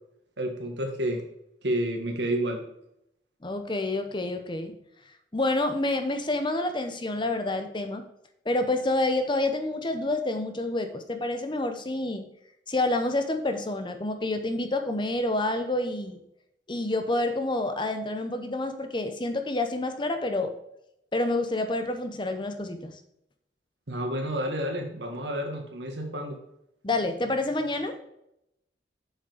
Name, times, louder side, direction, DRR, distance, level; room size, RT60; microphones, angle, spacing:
voice 1, 0.4-1.2 1.6-2.6 23.9-26.4, right 1 dB, 80° right, 2 dB, 1.7 m, -30 dB
voice 2, 3.4-4.8 5.3-8.1 8.4-12.3 12.7-16.2 16.7-20.5 21.1-23.0 26.8-27.9, left 2 dB, 25° left, 7 dB, 0.8 m, -28 dB
7.6 x 6.4 x 5.0 m, 0.80 s
head